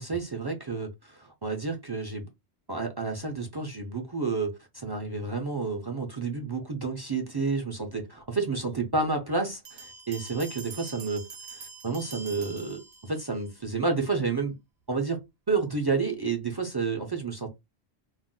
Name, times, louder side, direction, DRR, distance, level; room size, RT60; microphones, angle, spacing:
voice 1, 0.0-2.3 2.7-14.5 14.9-15.2 15.5-17.5, right 4 dB, 40° right, 0.3 m, -30 dB
Bell, 9.7-13.4, right 4 dB, 75° right, 0.9 m, -44 dB
2.5 x 2.1 x 3.7 m
omnidirectional pair, 1.1 m